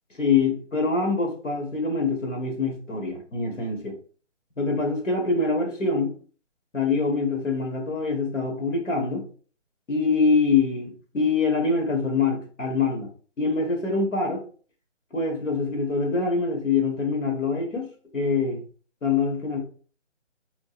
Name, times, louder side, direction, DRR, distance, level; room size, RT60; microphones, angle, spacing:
voice 1, 0.2-4.0 4.6-6.1 6.7-9.2 9.9-13.1 13.4-14.4 15.1-18.6 19.0-19.6, left 4 dB, 80° left, 2 dB, 1.8 m, -24 dB
4.4 x 3.1 x 2.5 m, 0.42 s
hypercardioid pair, 180°, 37 cm